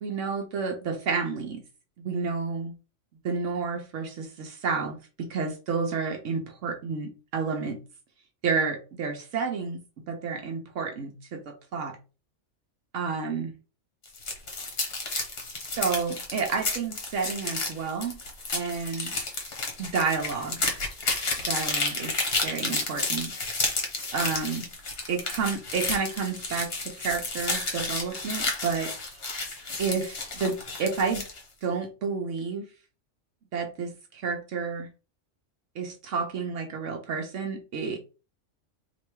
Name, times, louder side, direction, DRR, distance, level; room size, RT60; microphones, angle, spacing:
voice 1, 0.0-1.6 2.0-2.7 3.2-7.8 8.4-9.8 10.1-12.0 12.9-13.5 15.8-18.2 18.5-19.1 19.8-20.8 21.5-22.1 22.4-23.3 24.1-24.6 25.1-28.9 29.8-31.2 31.6-32.6 33.5-34.9 35.8-38.0, right 5 dB, 85° right, 1.2 m, -30 dB
sound 1, 14.0-31.4, left 3 dB, 55° left, 1.4 m, -31 dB
3.2 x 3.0 x 4.6 m
omnidirectional pair, 1.2 m